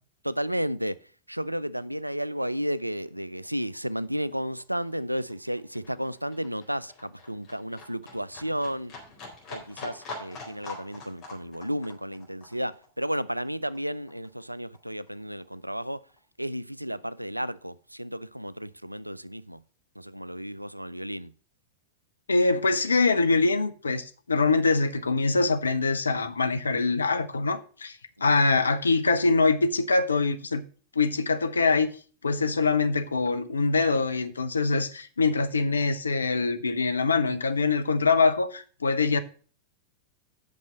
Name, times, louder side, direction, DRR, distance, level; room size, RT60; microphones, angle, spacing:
voice 1, 0.2-1.0 1.3-8.9 9.5-16.0 16.4-19.6 20.0-21.3, equal, 90° right, 0.4 m, -33 dB
Livestock farm animals working animals, 3.0-3.2 3.4-14.4 14.7-15.8 16.1-16.2, left 3 dB, 35° left, 3.9 m, -44 dB
voice 2, 22.3-30.6 30.9-31.9 32.2-39.2, left 3 dB, 75° left, 0.7 m, -24 dB
8.4 x 6.1 x 6.5 m
figure-of-eight pair, 90°, 0 cm